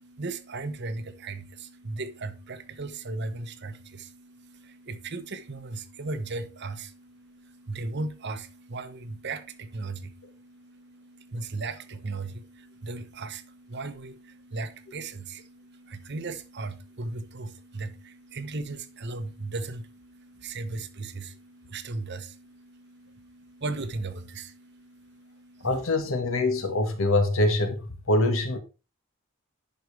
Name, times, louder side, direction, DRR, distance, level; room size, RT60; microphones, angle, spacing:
voice 1, 0.0-25.7, right 3 dB, 55° right, 0.9 m, -37 dB
voice 2, 25.6-28.6, left 2 dB, 75° left, 1.5 m, -24 dB
11.0 x 5.3 x 3.3 m
head